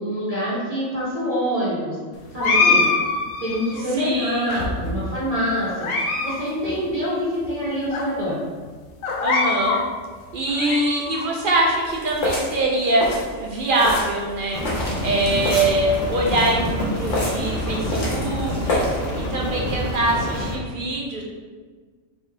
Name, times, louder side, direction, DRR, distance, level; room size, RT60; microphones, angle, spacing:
voice 1, 0.0-2.0 2.3-2.8 3.4-5.9 6.2-8.4, equal, 30° right, -10 dB, 1.2 m, -25 dB
sound 1, 2.4-3.8 4.5-5.2 5.6-6.4 6.6-6.7 7.4-7.5 7.9-8.0 9.0-9.8 10.3-11.2, left 3 dB, 85° left, 1.1 m, -23 dB
voice 2, 3.9-4.7 9.2-9.8 10.3-14.6 15.0-21.2, right 2 dB, 55° right, -1 dB, 0.6 m, -23 dB
sound 2, 11.8-19.1, left 1 dB, 65° left, 1.5 m, -29 dB
Rain, 14.5-20.6, equal, 40° left, 0.7 m, -27 dB
4.1 x 3.7 x 3.4 m, 1.5 s
omnidirectional pair, 1.4 m